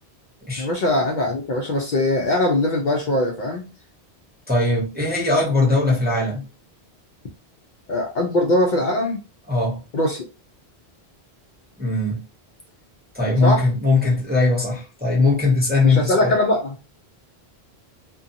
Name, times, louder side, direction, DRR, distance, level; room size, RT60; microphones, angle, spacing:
voice 1, 0.6-3.7 7.9-9.2 9.9-10.3 13.4-13.6 15.8-16.9, left 1 dB, 55° left, 0.6 m, -21 dB
voice 2, 4.5-6.4 9.5-9.8 11.8-12.2 13.1-16.4, left 3 dB, 10° right, 0.6 m, -20 dB
2.6 x 2.2 x 2.6 m
omnidirectional pair, 1.1 m